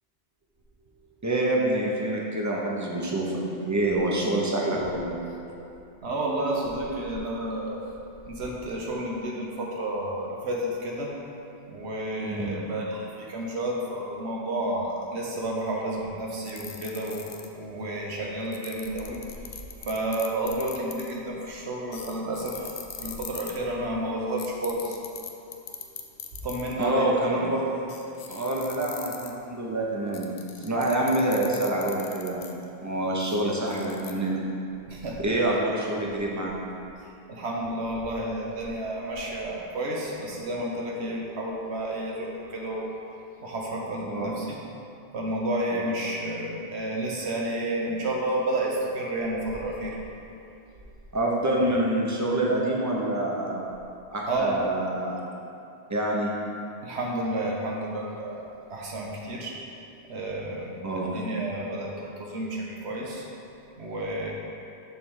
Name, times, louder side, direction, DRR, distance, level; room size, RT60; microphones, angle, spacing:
voice 1, 1.2-5.2 12.2-12.7 26.8-27.8 28.3-32.5 32.8-34.4 35.2-36.5 44.0-44.3 45.7-45.9 51.1-53.7 54.1-55.2 55.9-56.3 60.8-61.1, right 1 dB, 20° right, -3 dB, 0.8 m, -26 dB
voice 2, 6.0-7.9 8.3-11.1 11.7-19.2 19.8-22.7 23.0-25.0 26.4-27.5 34.9-35.2 35.8-36.1 37.3-42.9 43.4-44.5 45.1-50.0 54.3-54.6 56.8-58.4 58.7-59.6 60.1-63.3 63.8-64.3, right 1 dB, 75° right, -2 dB, 1.3 m, -31 dB
sound 1, 16.5-17.7 18.5-21.3 21.9-23.6 24.4-26.8 27.3-27.4 27.9-29.5 30.1-32.6 33.2-34.1, left 8 dB, 75° left, 0.8 m, -40 dB
6.9 x 3.4 x 6.2 m, 2.6 s
omnidirectional pair, 1.1 m